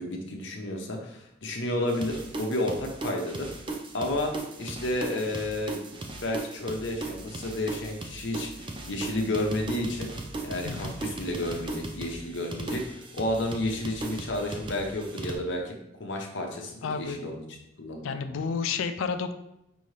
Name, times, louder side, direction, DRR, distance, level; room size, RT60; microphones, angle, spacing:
voice 1, 0.0-3.5 3.9-4.3 4.6-5.8 6.2-8.5 8.8-10.1 10.4-17.4 17.8-18.2, left 1 dB, 70° left, 1 dB, 0.8 m, -31 dB
sound 1, 1.9-15.4, right 2 dB, 25° right, 0.4 m, -38 dB
voice 2, 16.8-17.2 18.0-19.3, left 5 dB, 90° left, 10 dB, 0.4 m, -30 dB
5.2 x 2.7 x 3.2 m, 0.85 s
head